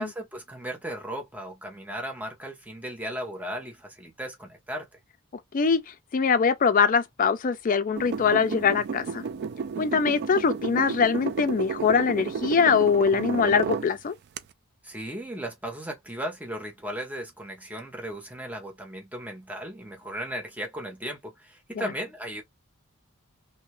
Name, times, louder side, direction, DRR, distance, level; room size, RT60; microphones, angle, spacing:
voice 1, 0.0-4.9 14.8-22.4, equal, 10° right, 0.8 m, -36 dB
voice 2, 6.1-9.2 9.8-14.2 21.8-21.9, left 6 dB, 40° left, 0.4 m, -23 dB
sound 1, 8.0-13.9 14.4-14.5, right 6 dB, 50° right, 0.3 m, -32 dB
2.7 x 2.4 x 3.0 m
head